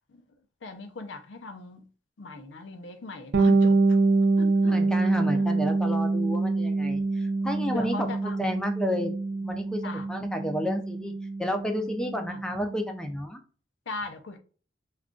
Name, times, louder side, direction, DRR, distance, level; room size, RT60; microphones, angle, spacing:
voice 1, 0.6-1.9 2.2-4.0 4.4-4.8 5.3-5.6 7.4-8.5 9.8-10.1 12.3-12.4 13.9-14.4, left 3 dB, 80° left, 0.5 m, -39 dB
Bass guitar, 3.3-12.9, right 3 dB, 60° right, 0.5 m, -25 dB
voice 2, 4.6-11.1 11.4-13.4, equal, 5° left, 0.4 m, -31 dB
2.3 x 2.2 x 3.6 m
head